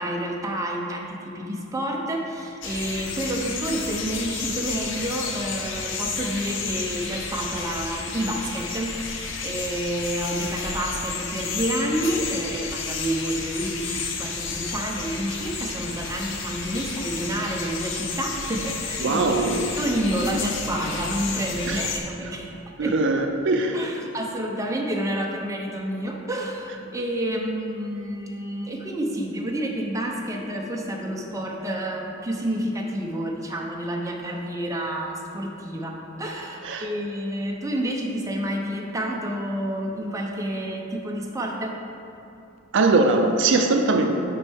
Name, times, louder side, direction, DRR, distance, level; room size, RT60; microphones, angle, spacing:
voice 1, 0.0-19.4 19.8-22.5 22.8-23.0 23.7-41.8, right 1 dB, 15° right, 0 dB, 0.6 m, -29 dB
sound 1, 2.6-22.0, left 4 dB, 65° left, 0.7 m, -32 dB
voice 2, 19.0-19.8 21.6-21.8 22.2-22.3 22.8-23.9 36.6-36.9 42.7-44.1, right 3 dB, 65° right, 4 dB, 0.5 m, -21 dB
7.7 x 5.3 x 3.4 m, 2.8 s
head